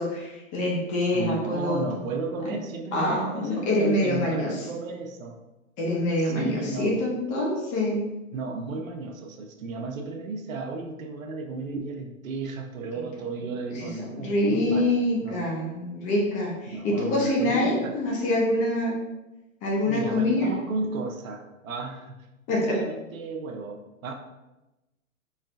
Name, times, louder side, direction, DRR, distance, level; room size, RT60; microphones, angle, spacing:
voice 1, 0.0-1.8 2.9-4.5 5.8-8.0 13.7-18.9 19.6-20.5 22.5-22.8, left 1 dB, 20° left, -3 dB, 0.5 m, -25 dB
voice 2, 1.1-5.4 6.2-6.9 8.3-15.4 16.7-18.0 19.8-22.2 22.7-24.1, right 3 dB, 70° right, 3 dB, 0.8 m, -34 dB
4.4 x 3.1 x 2.5 m, 1.0 s
hypercardioid pair, 130°, 42 cm